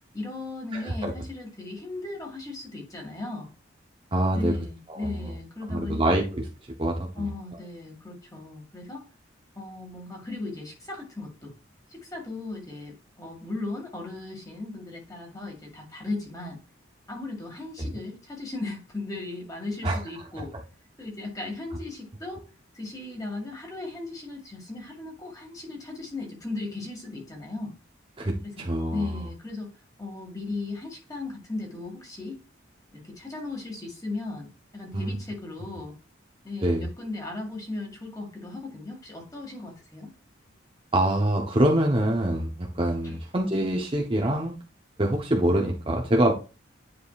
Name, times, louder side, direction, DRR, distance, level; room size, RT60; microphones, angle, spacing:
voice 1, 0.1-3.5 4.3-6.2 7.2-9.1 9.6-11.5 11.9-16.6 17.1-20.5 21.0-22.4 22.7-27.7 28.6-29.7 30.0-32.4 32.9-36.0 36.4-40.1 43.0-43.2, left 2 dB, 15° left, 2.1 m, -37 dB
voice 2, 0.7-1.1 4.1-4.5 4.9-5.2 5.7-6.5 6.8-7.3 17.8-17.9 19.8-20.0 28.2-29.1 34.9-35.2 36.6-36.9 40.9-44.6 45.0-46.3, right 1 dB, 25° right, 0.9 m, -25 dB
9.8 x 5.0 x 2.4 m
head